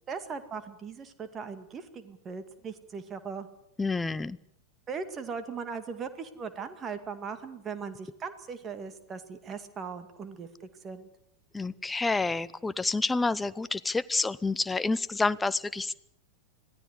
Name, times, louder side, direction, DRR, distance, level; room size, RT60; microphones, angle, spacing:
voice 1, 0.1-3.5 4.9-11.1, right 5 dB, 25° right, 9 dB, 2.2 m, -39 dB
voice 2, 3.8-4.4 11.5-15.9, left 3 dB, 10° left, 17 dB, 0.8 m, -28 dB
25.5 x 17.0 x 8.1 m, 0.77 s
figure-of-eight pair, 90°, 0 cm